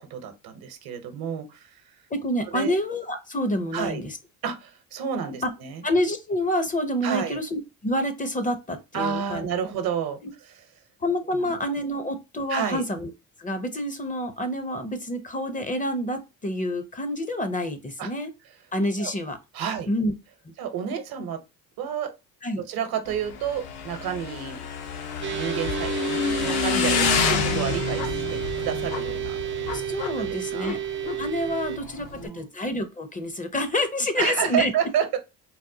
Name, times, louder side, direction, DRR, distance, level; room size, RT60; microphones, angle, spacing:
voice 1, 0.0-1.9 2.5-2.7 3.7-4.0 4.4-5.8 7.0-7.4 8.9-10.5 11.3-11.5 12.5-12.8 18.0-18.1 19.0-19.1 19.5-19.9 20.6-21.4 21.8-22.1 22.6-24.6 25.3-29.8 30.2-30.8 32.1-32.4 34.2-35.2, right 8 dB, 70° right, 0.8 m, -30 dB
voice 2, 2.1-4.2 5.4-5.5 5.8-9.5 11.0-13.1 13.4-18.3 18.7-19.4 19.9-20.1 20.4-20.5 22.4-22.6 29.7-30.8 31.2-34.7, left 1 dB, 20° left, 0.5 m, -28 dB
Motorcycle / Engine, 23.1-32.3, left 6 dB, 75° left, 0.8 m, -28 dB
sound 1, 25.2-31.8, right 11 dB, 30° right, 0.4 m, -31 dB
4.0 x 2.1 x 2.6 m
supercardioid pair, 75°, 38 cm